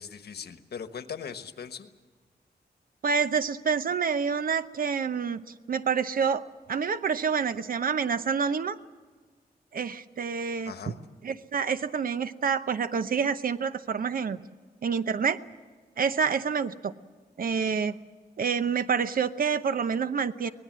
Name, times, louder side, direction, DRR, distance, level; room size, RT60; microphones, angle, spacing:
voice 1, 0.0-1.9 10.6-11.0, left 7 dB, 75° left, 9 dB, 1.3 m, -39 dB
voice 2, 3.0-6.4 6.7-8.8 9.7-10.7 11.2-14.4 14.8-15.4 16.0-16.9 17.4-18.0 18.4-20.5, right 6 dB, 60° right, 12 dB, 0.8 m, -27 dB
24.5 x 19.0 x 7.6 m, 1.5 s
wide cardioid pair, 145°, 17 cm